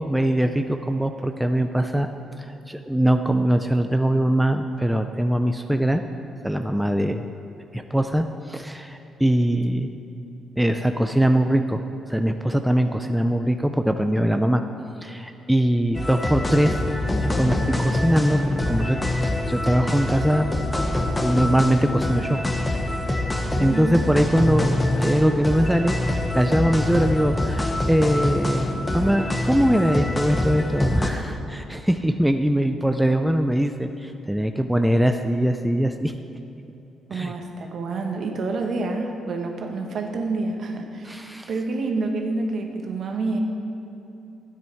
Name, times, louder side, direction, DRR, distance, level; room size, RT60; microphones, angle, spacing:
voice 1, 0.0-2.1 2.4-6.0 6.4-7.3 7.7-9.9 10.6-11.8 12.1-14.6 15.0-16.8 17.2-19.0 19.5-20.5 21.2-22.4 23.6-28.7 28.9-36.1 37.1-37.3 41.0-41.5, right 1 dB, 5° right, 6 dB, 0.4 m, -22 dB
sound 1, 15.9-31.1, left 1 dB, 15° left, 1.0 m, -25 dB
voice 2, 23.5-24.1 31.3-31.4 37.1-43.4, right 3 dB, 55° right, 3 dB, 1.3 m, -28 dB
12.0 x 9.0 x 4.6 m, 2.9 s
cardioid pair, 90°, 0 cm